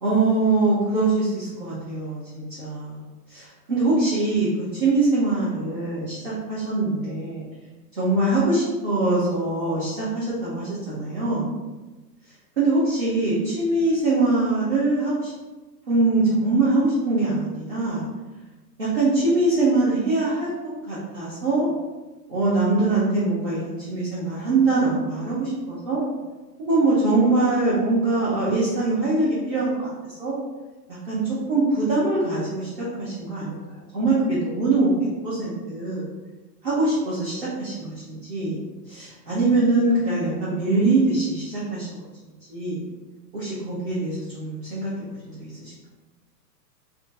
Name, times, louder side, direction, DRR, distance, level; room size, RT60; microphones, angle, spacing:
voice 1, 0.0-7.4 8.0-11.5 12.6-15.3 15.9-18.1 18.8-20.5 20.9-21.7 22.3-26.0 26.6-30.3 30.9-33.6 33.9-34.9 35.2-36.0 36.6-38.6 38.9-41.9 42.5-42.8 43.3-45.7, right 2 dB, 35° right, -8 dB, 0.5 m, -23 dB
2.5 x 2.2 x 3.6 m, 1.2 s
hypercardioid pair, 175°, 50 cm